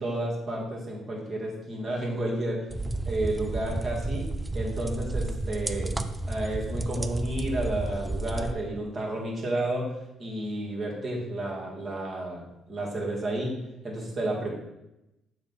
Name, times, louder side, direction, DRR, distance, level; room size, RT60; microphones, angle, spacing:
voice 1, 0.0-2.6 3.1-4.3 4.5-5.9 6.3-9.9 10.2-12.4 12.7-13.5 13.8-14.6, right 1 dB, 45° right, -3 dB, 1.9 m, -31 dB
sound 1, 2.7-8.5, right 2 dB, 20° right, 0.5 m, -32 dB
7.0 x 2.6 x 5.5 m, 0.92 s
hypercardioid pair, 55°, 0 cm